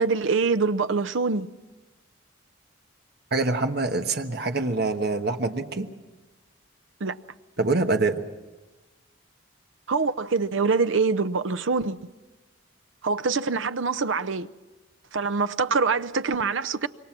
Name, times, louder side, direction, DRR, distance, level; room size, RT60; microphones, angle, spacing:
voice 1, 0.0-1.5 7.0-7.1 9.9-12.0 13.0-14.5 15.1-16.9, right 4 dB, 75° right, 0.7 m, -24 dB
voice 2, 3.3-5.9 7.6-8.2, right 3 dB, 55° right, 1.3 m, -25 dB
26.5 x 23.0 x 6.0 m
head